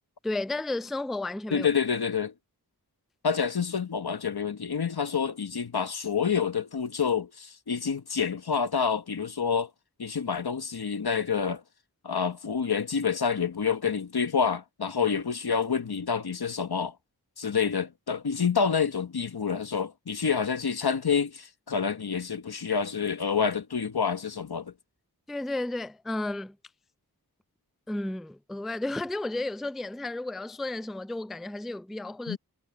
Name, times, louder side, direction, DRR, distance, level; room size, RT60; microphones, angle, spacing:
voice 1, 0.2-1.7 25.3-26.6 27.9-32.4, left 2 dB, ahead, 0.3 m, -33 dB
voice 2, 1.5-2.3 3.2-9.7 10.0-11.6 12.0-16.9 17.4-24.7 32.3-32.4, left 6 dB, 80° left, 1.2 m, -28 dB
wide cardioid pair, 40°, 38 cm